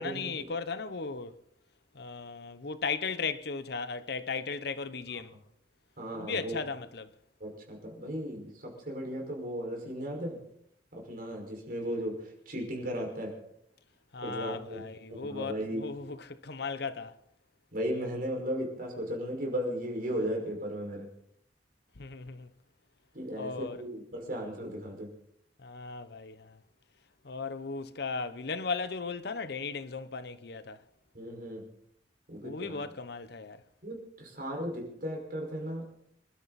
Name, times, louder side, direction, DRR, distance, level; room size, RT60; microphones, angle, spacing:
voice 1, 0.0-1.4 1.9-5.3 6.1-7.1 14.1-17.1 22.0-22.5 23.3-23.8 25.6-26.6 27.2-30.8 32.4-33.6, left 4 dB, 60° left, 0.9 m, -36 dB
voice 2, 6.0-6.6 7.4-10.4 10.9-13.4 14.2-14.8 15.1-15.8 17.7-21.1 23.1-25.1 31.1-31.6 32.3-32.8 33.8-35.8, equal, 50° right, 5.5 m, -36 dB
26.5 x 12.5 x 4.2 m
head